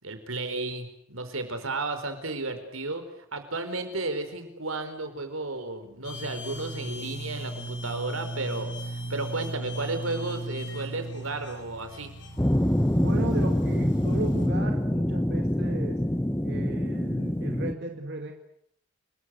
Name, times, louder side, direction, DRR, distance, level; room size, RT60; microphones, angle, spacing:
voice 1, 0.0-3.0 3.3-12.1, right 2 dB, 85° right, 9 dB, 4.7 m, -33 dB
sound 1, 6.0-14.5, right 1 dB, 60° left, 6.8 m, -37 dB
sound 2, 12.4-17.7, equal, 10° left, 1.0 m, -25 dB
voice 2, 13.0-16.0 16.4-18.3, right 2 dB, 55° right, 3 dB, 2.2 m, -35 dB
30.0 x 21.0 x 8.2 m, 0.69 s
head